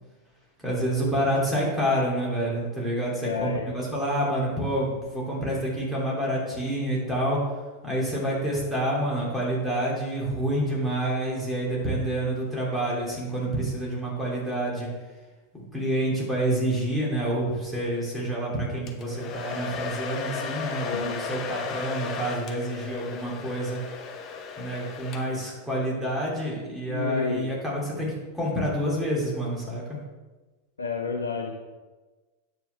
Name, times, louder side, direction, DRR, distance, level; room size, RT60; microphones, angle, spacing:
voice 1, 0.6-7.4 7.8-14.9 15.7-23.8 24.6-30.0, right 1 dB, 5° right, -5 dB, 3.2 m, -28 dB
voice 2, 3.2-3.7 20.9-21.2 26.9-27.5 30.8-31.6, left 5 dB, 70° left, 3 dB, 0.7 m, -30 dB
Domestic sounds home sounds, 18.9-25.6, left 5 dB, 30° left, 0.9 m, -35 dB
9.1 x 7.9 x 3.6 m, 1.2 s
figure-of-eight pair, 90°, 0 cm